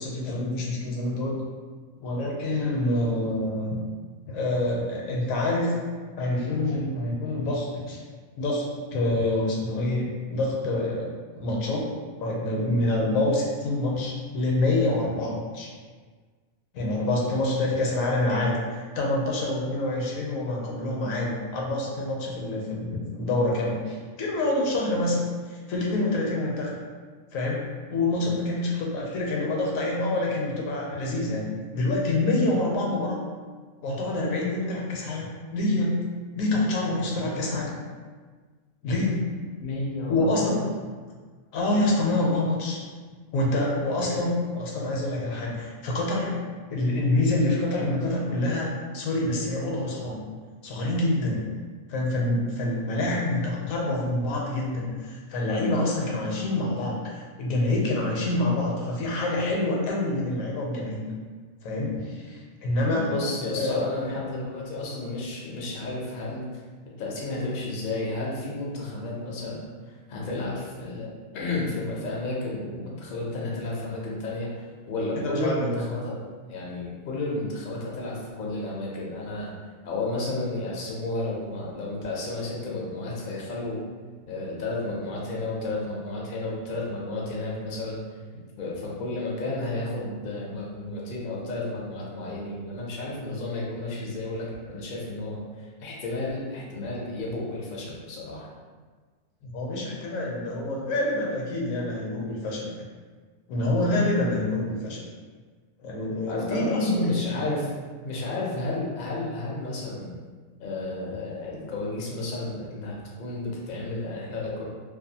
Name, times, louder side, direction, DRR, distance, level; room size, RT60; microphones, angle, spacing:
voice 1, 0.0-1.4 2.0-3.8 4.3-5.8 6.2-8.0 8.4-8.7 8.9-11.1 11.4-11.8 12.2-15.7 16.7-26.7 27.3-27.6 27.9-31.5 31.7-33.2 33.8-35.9 36.3-37.8 38.8-39.2 40.1-40.5 41.5-42.8 43.3-46.4 46.7-48.7 48.9-50.2 50.6-51.4 51.9-61.1 61.6-63.0 63.6-63.8 75.2-75.8 99.4-102.7 103.5-105.0 105.8-107.1, left 2 dB, 80° left, -2 dB, 1.0 m, -26 dB
voice 2, 39.6-40.6 62.9-66.4 67.0-79.5 79.8-83.8 84.3-88.0 88.6-98.5 106.3-107.7 108.0-110.1 110.6-114.6, left 2 dB, 60° left, -4 dB, 0.5 m, -32 dB
2.5 x 2.3 x 2.7 m, 1.5 s
omnidirectional pair, 1.4 m